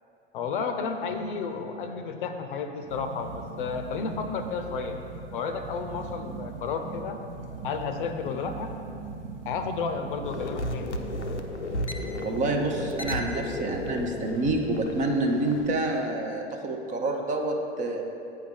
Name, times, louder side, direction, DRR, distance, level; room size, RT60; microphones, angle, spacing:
voice 1, 0.3-5.0 5.3-7.2 7.6-8.8 9.5-11.0, left 5 dB, 50° left, 7 dB, 0.7 m, -32 dB
sound 1, 2.9-14.3, right 4 dB, 55° right, 0.9 m, -41 dB
sound 2, 10.2-15.7, left 2 dB, 85° left, 0.7 m, -34 dB
voice 2, 12.2-18.0, right 2 dB, 20° right, 3 dB, 0.7 m, -28 dB
8.5 x 5.7 x 5.1 m, 2.7 s
figure-of-eight pair, 95°, 34 cm